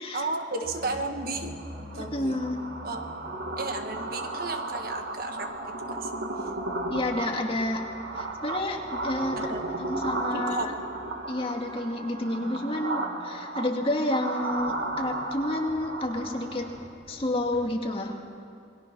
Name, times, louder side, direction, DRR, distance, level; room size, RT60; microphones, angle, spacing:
voice 1, 0.1-1.5 1.9-2.4 2.8-3.1 3.6-5.5 5.9-6.1 9.5-9.7 10.3-10.7, right 3 dB, 50° right, 5 dB, 1.7 m, -33 dB
sound 1, 0.6-15.4 15.7-17.7, equal, 85° right, 5.8 m, -48 dB
sound 2, 1.5-16.9, right 2 dB, 70° right, 2.0 m, -34 dB
voice 2, 1.9-2.6 6.9-7.9 8.1-9.5 9.8-10.7 11.3-16.6 17.1-18.2, left 1 dB, 30° left, 1 dB, 2.1 m, -30 dB
27.5 x 21.0 x 6.2 m, 2.4 s
head